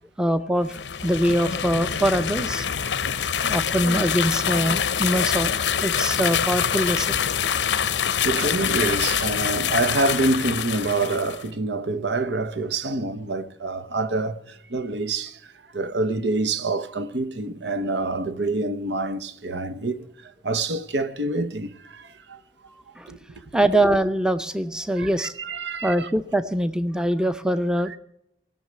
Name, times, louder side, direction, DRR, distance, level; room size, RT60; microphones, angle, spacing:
voice 1, 0.2-2.7 3.4-7.2 23.0-23.1 23.5-25.3 25.7-27.9, right 1 dB, 5° right, 0.5 m, -23 dB
sound 1, 0.6-11.4, left 8 dB, 90° left, 0.7 m, -25 dB
voice 2, 8.2-15.4 15.7-22.4 23.1-23.2 25.0-26.1, right 2 dB, 85° right, 1.0 m, -26 dB
19.0 x 6.5 x 9.3 m
head